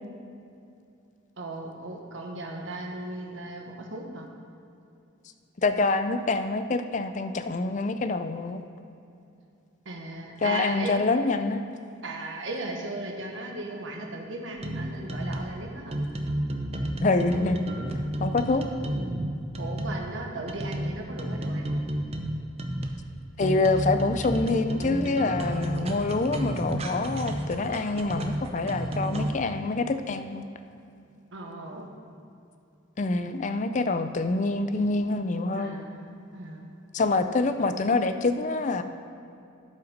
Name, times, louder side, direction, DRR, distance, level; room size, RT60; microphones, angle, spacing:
voice 1, 1.4-4.2 9.8-11.0 12.0-16.0 19.6-21.9 31.3-31.9 35.5-36.7, right 2 dB, 75° right, 1 dB, 1.2 m, -37 dB
voice 2, 5.6-8.6 10.4-11.6 17.0-17.7 18.2-18.6 23.4-30.5 33.0-35.8 36.9-38.8, left 3 dB, 40° left, 9 dB, 0.4 m, -26 dB
sound 1, 14.6-15.5 15.9-20.0 20.5-23.0 23.4-29.3, right 1 dB, 30° right, 0.7 m, -31 dB
12.0 x 5.7 x 5.1 m, 2.6 s
head